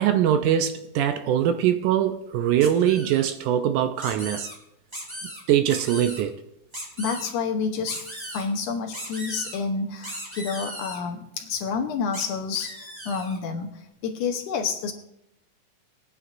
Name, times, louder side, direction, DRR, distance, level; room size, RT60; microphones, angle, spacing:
voice 1, 0.0-4.5 5.5-6.4, right 10 dB, 80° right, 2.0 m, -22 dB
sound 1, 2.6-3.2 4.0-4.5 4.9-5.4 5.7-6.2 6.7-7.3 7.9-8.5 8.9-9.6 10.0-11.0 12.1-12.2 12.6-13.4, equal, 10° right, 1.9 m, -37 dB
voice 2, 7.0-14.9, left 5 dB, 75° left, 2.3 m, -29 dB
21.5 x 9.5 x 2.6 m
omnidirectional pair, 3.8 m